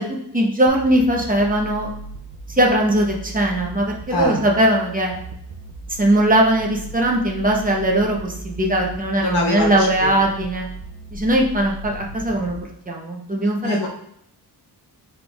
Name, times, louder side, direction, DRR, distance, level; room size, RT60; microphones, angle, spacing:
voice 1, 0.0-1.9 2.6-5.1 6.0-10.7 11.1-12.6 12.9-13.8, right 1 dB, 20° right, -1 dB, 0.8 m, -19 dB
sound 1, 0.7-12.6, right 1 dB, 70° right, 0.7 m, -37 dB
voice 2, 4.1-4.4 9.2-10.1 13.6-13.9, left 2 dB, 80° left, -1 dB, 1.4 m, -24 dB
5.7 x 3.6 x 2.4 m, 0.72 s
wide cardioid pair, 140°, 39 cm